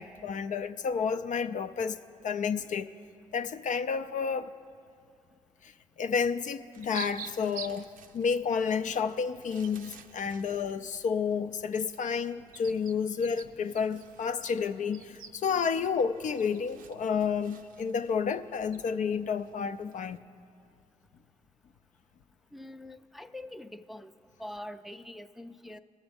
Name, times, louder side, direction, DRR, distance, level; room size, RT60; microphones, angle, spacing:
voice 1, 0.0-2.0 2.2-2.9 3.3-4.5 5.6-5.7 6.0-20.2, left 6 dB, 65° left, 0.4 m, -30 dB
sound 1, 6.7-20.2, right 7 dB, 80° right, 0.5 m, -50 dB
voice 2, 22.5-24.1 24.4-25.8, left 1 dB, ahead, 0.4 m, -44 dB
21.0 x 7.2 x 3.5 m
supercardioid pair, 55°, 14 cm